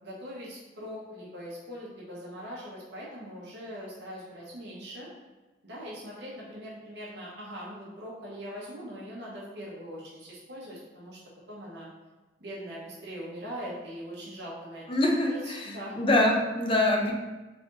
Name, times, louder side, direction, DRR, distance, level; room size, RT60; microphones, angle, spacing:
voice 1, 0.0-5.1 5.6-11.2 11.5-11.9 12.4-14.8 15.3-16.0 16.7-16.9, equal, 65° right, -6 dB, 1.1 m, -41 dB
voice 2, 14.9-15.7 16.0-17.1, left 1 dB, 30° left, 1 dB, 0.6 m, -24 dB
3.7 x 3.4 x 3.8 m, 1.2 s
head